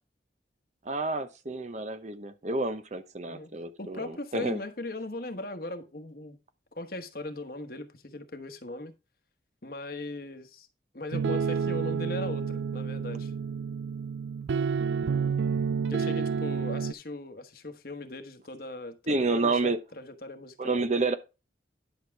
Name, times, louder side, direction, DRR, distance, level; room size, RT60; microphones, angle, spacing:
voice 1, 0.8-4.6 19.1-19.8 20.6-21.1, right 3 dB, 40° right, 0.8 m, -29 dB
voice 2, 3.8-6.4 6.7-8.9 9.6-10.7 10.9-13.3 15.9-20.8, left 2 dB, 50° left, 1.2 m, -39 dB
sound 1, 11.1-16.9, right 6 dB, 85° right, 0.4 m, -29 dB
11.0 x 6.4 x 3.5 m
head